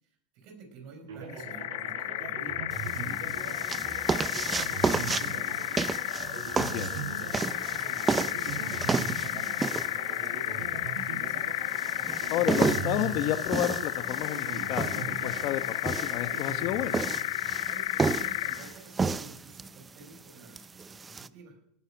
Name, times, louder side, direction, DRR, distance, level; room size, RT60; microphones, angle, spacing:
voice 1, 0.0-5.9 6.7-11.6 17.6-21.6, right 4 dB, 60° right, 3 dB, 5.5 m, -50 dB
sound 1, 1.1-18.0, right 5 dB, 85° right, 7.5 m, -41 dB
sound 2, 1.3-18.7, left 15 dB, 85° left, 0.7 m, -33 dB
sound 3, 2.7-21.3, right 4 dB, 20° right, 0.5 m, -33 dB
voice 2, 6.5-6.9 12.3-17.0, left 13 dB, 55° left, 11 dB, 1.0 m, -31 dB
18.5 x 9.9 x 6.0 m, 0.72 s
supercardioid pair, 120°, 0 cm